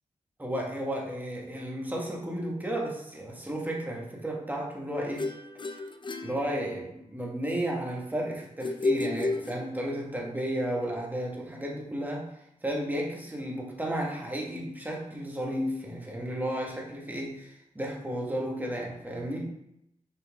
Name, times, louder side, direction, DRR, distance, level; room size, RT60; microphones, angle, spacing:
voice 1, 0.4-5.3 6.2-12.3 12.6-19.5, right 1 dB, 10° right, -2 dB, 1.9 m, -33 dB
sound 1, 5.2-7.1 8.6-10.1, left 3 dB, 35° left, 0.6 m, -32 dB
7.0 x 4.4 x 3.8 m, 0.80 s
cardioid pair, 70°, 14 cm